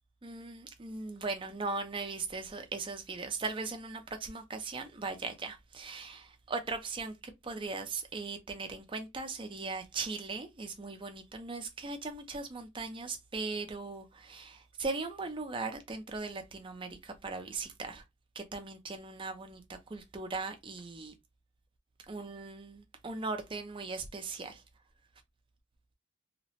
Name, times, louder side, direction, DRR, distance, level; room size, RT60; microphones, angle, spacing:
voice 1, 0.2-18.0 18.4-21.1 22.1-24.6, right 3 dB, 25° right, 0.4 m, -39 dB
2.8 x 2.0 x 2.8 m
head